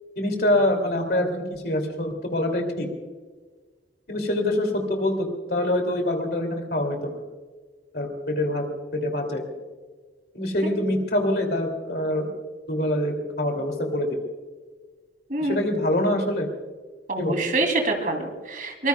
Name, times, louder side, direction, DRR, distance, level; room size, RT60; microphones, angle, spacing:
voice 1, 0.2-2.9 4.1-7.2 7.9-8.6 8.9-9.4 10.3-12.3 12.7-14.1 15.4-16.5 17.2-17.4, left 1 dB, 55° left, 4 dB, 2.7 m, -25 dB
voice 2, 17.1-18.9, right 2 dB, 45° right, 4 dB, 2.9 m, -25 dB
23.5 x 20.5 x 2.3 m, 1.4 s
head